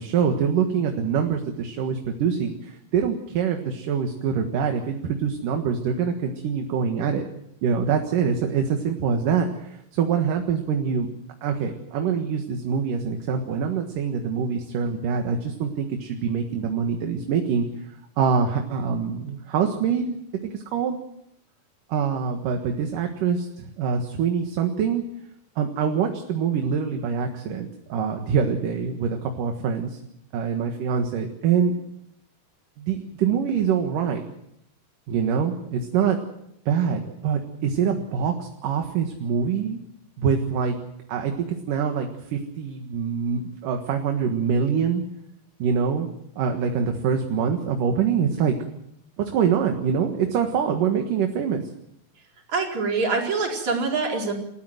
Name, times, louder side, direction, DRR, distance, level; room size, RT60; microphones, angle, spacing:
voice 1, 0.0-7.2 7.6-11.1 11.4-20.2 20.5-21.0 21.9-25.1 25.6-30.0 30.3-31.7 32.8-34.2 35.1-36.2 36.7-39.8 40.2-40.8 41.1-45.0 45.6-46.1 46.4-48.6 49.2-51.6, right 6 dB, 70° right, 4 dB, 3.1 m, -25 dB
voice 2, 52.5-54.3, right 4 dB, 50° right, 0 dB, 5.7 m, -24 dB
29.5 x 14.5 x 7.9 m, 0.77 s
omnidirectional pair, 4.1 m